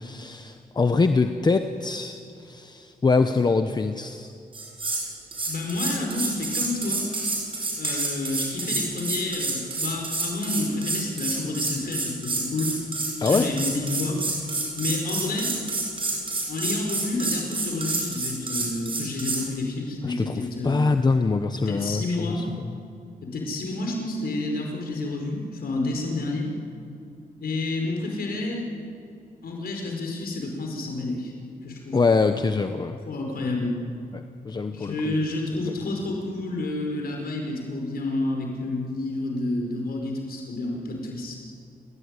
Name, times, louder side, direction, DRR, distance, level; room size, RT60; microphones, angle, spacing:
voice 1, 0.0-4.3 13.2-13.5 20.0-22.8 31.9-33.0 34.1-35.1 35.7-35.8, left 4 dB, 25° left, 7 dB, 0.9 m, -24 dB
sound 1, 4.5-5.0 5.3-19.4, right 3 dB, 35° right, 7.1 m, -28 dB
voice 2, 5.5-7.0 7.8-12.7 13.2-14.2 14.8-15.5 16.5-20.8 21.7-22.5 23.2-26.5 27.4-28.7 29.4-31.3 31.6-32.0 33.1-33.8 34.7-41.4, left 2 dB, 75° left, 1 dB, 5.1 m, -29 dB
30.0 x 17.0 x 9.8 m, 2.6 s
wide cardioid pair, 160°, 16 cm